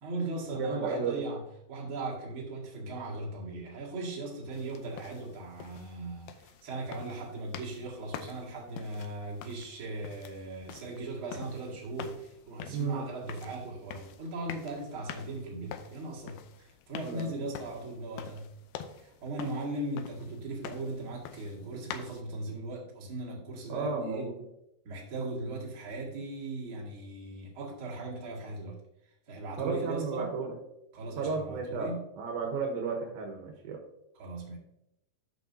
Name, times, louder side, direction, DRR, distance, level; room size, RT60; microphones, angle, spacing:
voice 1, 0.0-18.5 18.9-24.3 24.8-28.8 29.3-30.3 30.9-32.1 34.2-34.6, right 2 dB, 40° right, 2.4 m, -38 dB
voice 2, 0.5-1.2 12.7-13.0 17.0-17.3 23.7-24.3 29.6-30.6 31.2-33.8, right 4 dB, 75° right, 2.7 m, -33 dB
sound 1, 4.5-22.2, left 9 dB, 80° left, 2.4 m, -47 dB
13.5 x 5.4 x 2.7 m
omnidirectional pair, 4.5 m